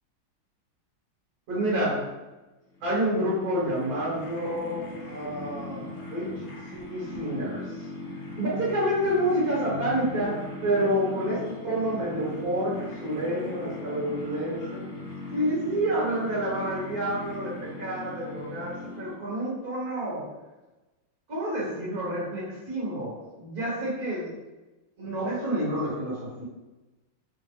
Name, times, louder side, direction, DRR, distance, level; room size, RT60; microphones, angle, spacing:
voice 1, 1.5-2.1 2.8-6.3 6.7-7.6 8.4-14.8 15.3-20.3 21.3-24.3 25.0-26.4, right 1 dB, 45° right, -6 dB, 1.8 m, -29 dB
sound 1, 2.7-19.4, left 2 dB, 65° left, 0.9 m, -39 dB
3.8 x 2.5 x 3.2 m, 1.1 s
omnidirectional pair, 2.3 m